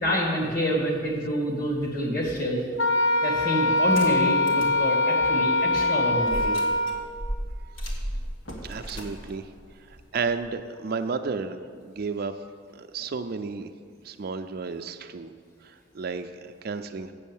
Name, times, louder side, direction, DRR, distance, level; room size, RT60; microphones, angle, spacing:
voice 1, 0.0-2.6 3.2-6.5, equal, 50° left, -1 dB, 2.0 m, -27 dB
Wind instrument woodwind instrument, 2.8-7.2, left 2 dB, 65° left, 0.6 m, -23 dB
sound 1, 3.8-4.8 5.2-5.3 6.2-10.5, equal, 85° left, 1.6 m, -35 dB
voice 2, 8.6-9.5 9.8-12.3 12.7-13.7 14.0-15.3 15.6-17.1, right 4 dB, 50° right, 8 dB, 0.4 m, -32 dB
8.4 x 7.0 x 7.2 m, 2.1 s
head